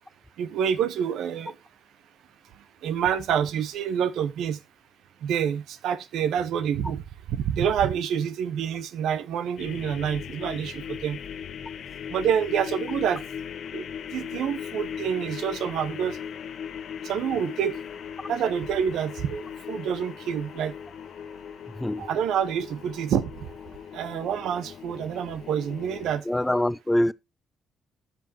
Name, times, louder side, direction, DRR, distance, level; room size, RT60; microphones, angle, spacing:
voice 1, 0.4-1.5 2.8-4.6 5.2-7.0 7.3-11.2 12.1-13.2 13.7-13.8 14.1-16.2 17.0-17.7 18.3-20.7 22.0-23.3 23.9-26.2, right 8 dB, 80° right, 0.9 m, -27 dB
sound 1, 9.6-26.2, left 8 dB, 65° left, 1.0 m, -38 dB
voice 2, 21.8-22.1 26.3-27.1, left 1 dB, 10° left, 0.4 m, -24 dB
12.5 x 7.3 x 2.8 m
cardioid pair, 90°, 0 cm